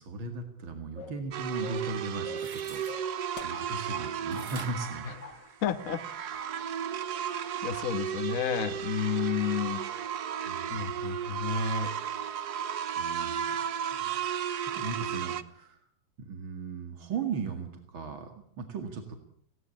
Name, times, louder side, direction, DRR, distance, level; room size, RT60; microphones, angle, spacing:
voice 1, 0.0-5.1 10.5-11.0 12.9-13.6 14.0-14.2 14.7-15.8 16.2-19.2, right 4 dB, 80° right, 5 dB, 3.0 m, -37 dB
sound 1, 1.0-1.3 1.6-1.9 2.2-2.6 2.9-4.1 4.3-4.5 4.8-5.4 5.6-5.8, left 6 dB, 60° left, 2.3 m, -45 dB
sound 2, 1.3-15.4, right 9 dB, 60° right, 1.4 m, -34 dB
sound 3, 2.3-3.0 4.3-5.9 6.3-6.4, right 4 dB, 35° right, 1.9 m, -47 dB
voice 2, 5.0-6.0 7.6-9.8 10.7-11.9, left 7 dB, 45° left, 10 dB, 1.5 m, -31 dB
19.5 x 17.5 x 8.5 m, 0.68 s
omnidirectional pair, 2.1 m